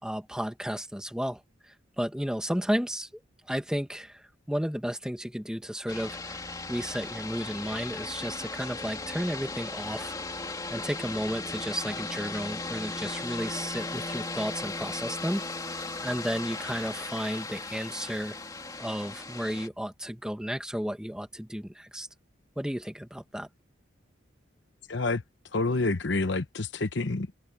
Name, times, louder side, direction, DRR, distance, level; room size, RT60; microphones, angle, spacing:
voice 1, 0.0-3.1 3.5-10.2 10.7-15.4 16.0-18.4 18.8-22.1 22.6-23.5, equal, 5° right, 1.5 m, -33 dB
sound 1, 5.9-19.7, left 3 dB, 20° left, 2.7 m, -37 dB
voice 2, 24.9-25.2 25.5-27.3, left 3 dB, 65° left, 0.9 m, -28 dB
head